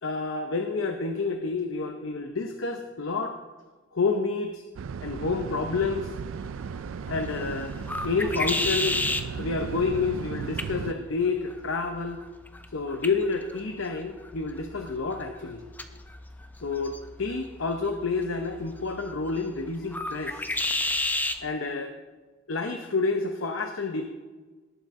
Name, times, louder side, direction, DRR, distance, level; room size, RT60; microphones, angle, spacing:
voice 1, 0.0-3.4 3.9-4.6 5.0-6.1 7.1-7.7 8.0-9.0 9.4-12.2 12.7-15.6 16.6-20.5 21.4-21.9 22.5-24.0, left 4 dB, 75° left, 6 dB, 0.8 m, -29 dB
sound 1, 4.8-10.9, right 6 dB, 75° right, 0.3 m, -36 dB
sound 2, 6.1-21.4, left 2 dB, 10° left, 0.6 m, -34 dB
18.0 x 7.7 x 3.7 m, 1.4 s
head